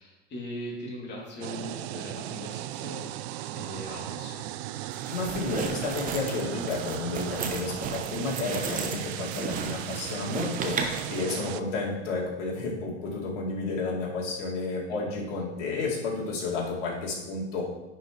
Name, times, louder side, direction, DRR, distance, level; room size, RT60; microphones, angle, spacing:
voice 1, 0.0-3.1 3.5-4.5 14.9-15.0, equal, 30° left, -4 dB, 2.7 m, -40 dB
sound 1, 1.4-11.6, right 14 dB, 60° right, 0.5 m, -37 dB
sound 2, 4.9-11.2, right 5 dB, 20° right, 0.8 m, -34 dB
voice 2, 5.1-17.6, left 3 dB, 70° left, -3 dB, 2.4 m, -31 dB
10.0 x 4.7 x 3.1 m, 1.0 s
hypercardioid pair, 105°, 37 cm